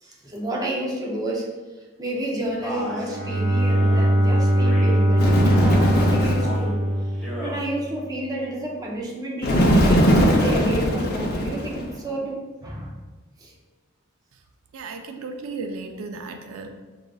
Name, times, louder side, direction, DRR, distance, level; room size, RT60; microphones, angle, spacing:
voice 1, 0.0-1.5 1.8-6.8 7.0-13.0 13.4-13.5, right 1 dB, 20° right, -2 dB, 0.5 m, -30 dB
Male speech man speaking, 2.6-3.1 3.7-4.1 4.6-5.0 5.4-5.9 6.3-6.7 7.1-7.6, equal, ahead, 0.9 m, -34 dB
Bowed string instrument, 2.9-7.9, equal, 65° right, 1.1 m, -21 dB
Bird, 5.2-6.6 9.4-11.9, equal, 50° left, 0.6 m, -20 dB
voice 2, 14.7-16.7, right 3 dB, 90° right, 5 dB, 0.4 m, -34 dB
6.1 x 2.4 x 2.3 m, 1.2 s
head